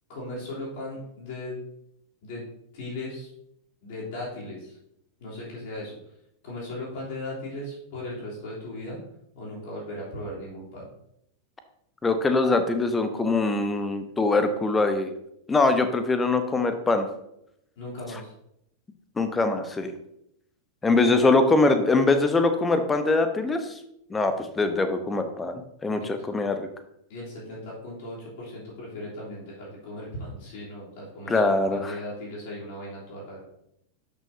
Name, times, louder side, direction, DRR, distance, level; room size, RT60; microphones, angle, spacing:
voice 1, 0.1-1.6 2.2-2.4 2.7-3.3 3.8-4.8 5.2-5.9 6.4-9.0 9.3-10.9 17.8-18.3 26.0-26.1 27.1-33.4, left 1 dB, 50° left, -6 dB, 3.3 m, -37 dB
voice 2, 12.0-15.1 15.5-17.1 19.2-19.9 20.8-23.7 24.1-26.7 31.3-32.0, left 3 dB, 15° left, 8 dB, 0.9 m, -23 dB
12.0 x 6.1 x 2.8 m, 0.78 s
figure-of-eight pair, 90°, 0 cm